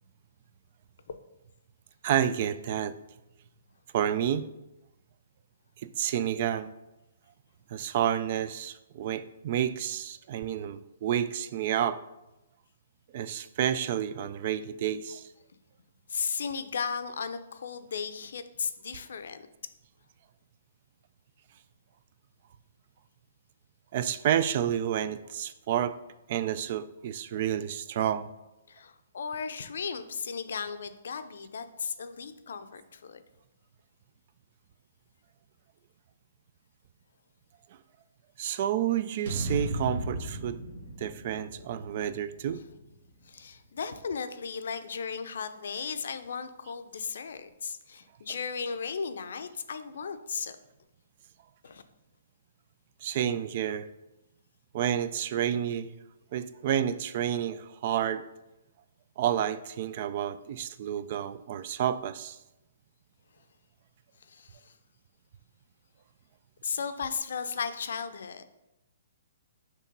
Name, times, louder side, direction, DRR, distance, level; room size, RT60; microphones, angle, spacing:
voice 1, 2.0-3.0 3.9-4.5 5.8-6.7 7.7-12.0 13.1-15.3 23.9-26.0 26.3-28.3 38.4-40.6 41.0-42.6 53.0-53.9 54.7-55.9 56.3-58.2 59.2-62.4, right 10 dB, 45° right, 14 dB, 0.3 m, -30 dB
voice 2, 16.1-19.5 28.7-33.2 42.5-42.6 43.2-50.6 51.6-51.8 64.3-64.7 66.6-68.4, left 6 dB, 70° left, 10 dB, 0.5 m, -36 dB
sound 1, 39.3-43.5, right 1 dB, 60° right, 1.3 m, -36 dB
6.7 x 3.0 x 5.3 m, 0.95 s
hypercardioid pair, 155°, 0 cm